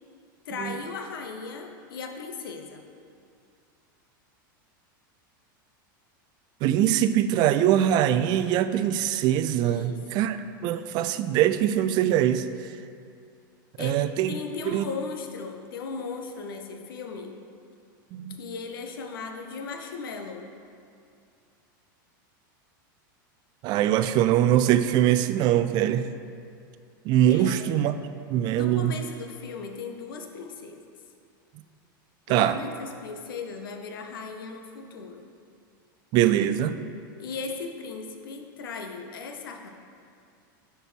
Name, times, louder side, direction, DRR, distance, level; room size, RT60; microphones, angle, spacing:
voice 1, 0.5-2.8 9.6-10.3 13.8-14.0 14.3-17.4 18.4-20.5 27.3-27.7 28.5-30.8 32.3-35.3 37.2-39.7, left 4 dB, 90° left, 4 dB, 0.8 m, -37 dB
voice 2, 6.6-10.4 10.6-12.5 13.8-14.4 14.7-14.9 18.1-18.4 23.6-26.1 27.1-27.9 28.3-28.9 32.3-32.6 36.1-36.7, right 11 dB, 40° right, 12 dB, 0.4 m, -22 dB
6.7 x 4.4 x 6.1 m, 2.4 s
supercardioid pair, 135°, 11 cm